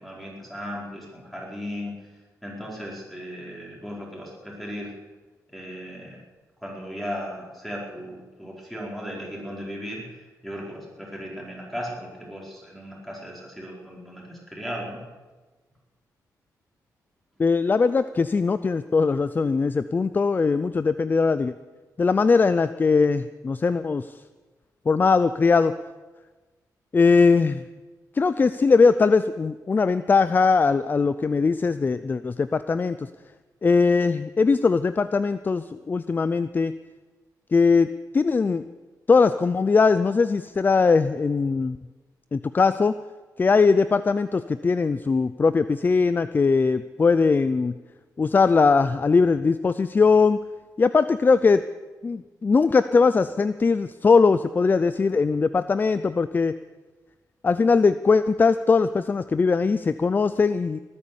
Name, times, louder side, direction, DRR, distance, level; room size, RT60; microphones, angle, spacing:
voice 1, 0.0-1.9 2.4-4.9 5.5-6.2 6.6-10.0 10.4-15.0, equal, ahead, -3 dB, 4.8 m, -36 dB
voice 2, 17.4-21.5 22.0-24.1 24.9-25.7 26.9-27.6 28.2-33.1 33.6-36.7 37.5-38.6 39.1-41.8 42.3-42.9 43.4-47.7 48.2-50.4 50.8-51.6 52.0-56.5 57.4-60.8, left 4 dB, 30° left, 13 dB, 0.4 m, -20 dB
19.5 x 9.9 x 7.1 m, 1.3 s
cardioid pair, 105°, 7 cm